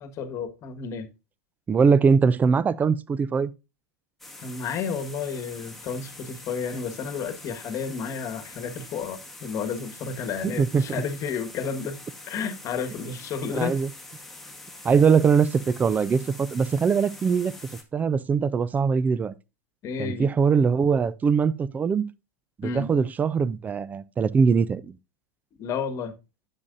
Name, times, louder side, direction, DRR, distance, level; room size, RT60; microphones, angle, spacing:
voice 1, 0.0-1.1 4.4-12.0 12.3-13.8 19.8-20.3 22.6-22.9 25.6-26.1, left 6 dB, 40° left, 1.4 m, -31 dB
voice 2, 1.7-3.5 10.4-11.0 13.5-13.9 14.8-17.5 17.9-19.3 20.0-22.1 22.6-25.0, right 5 dB, 20° right, 0.5 m, -22 dB
sound 1, 4.2-17.8, left 2 dB, 5° left, 1.5 m, -44 dB
9.6 x 7.5 x 2.5 m
hypercardioid pair, 95°, 8 cm